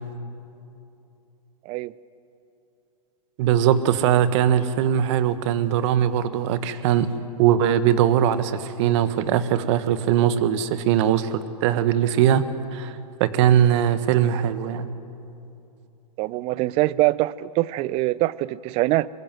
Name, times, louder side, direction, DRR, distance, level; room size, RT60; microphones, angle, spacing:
voice 1, 3.4-7.1 7.4-12.4 12.7-14.9, right 10 dB, 50° right, 13 dB, 1.4 m, -20 dB
voice 2, 16.2-19.1, right 18 dB, 30° right, 21 dB, 0.5 m, -23 dB
23.0 x 22.5 x 7.7 m, 2.8 s
hypercardioid pair, 115°, 20 cm